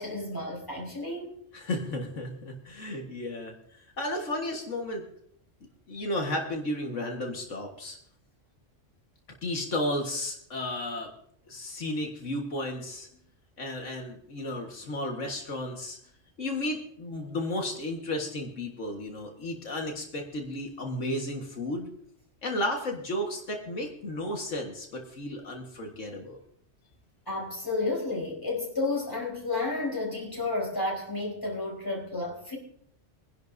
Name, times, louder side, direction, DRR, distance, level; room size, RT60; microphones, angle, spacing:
voice 1, 0.0-1.3 27.3-32.6, left 2 dB, 15° left, -1 dB, 4.4 m, -31 dB
voice 2, 1.5-3.5 4.0-5.0 5.9-8.0 9.4-11.1 11.5-13.1 13.6-16.0 16.4-21.9 22.4-26.4, left 1 dB, 85° left, 2 dB, 2.0 m, -33 dB
24.0 x 10.5 x 2.7 m, 0.65 s
omnidirectional pair, 1.3 m